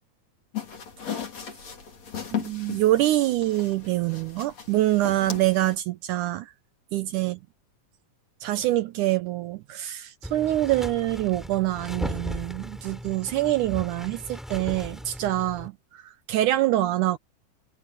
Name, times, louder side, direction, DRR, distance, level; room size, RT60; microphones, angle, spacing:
sound 1, 0.5-5.7, left 9 dB, 50° left, 4.9 m, -37 dB
voice 1, 2.3-6.5 6.9-7.4 8.4-17.2, right 15 dB, 80° right, 2.0 m, -25 dB
sound 2, 10.2-15.7, equal, ahead, 4.1 m, -37 dB
omnidirectional pair, 4.1 m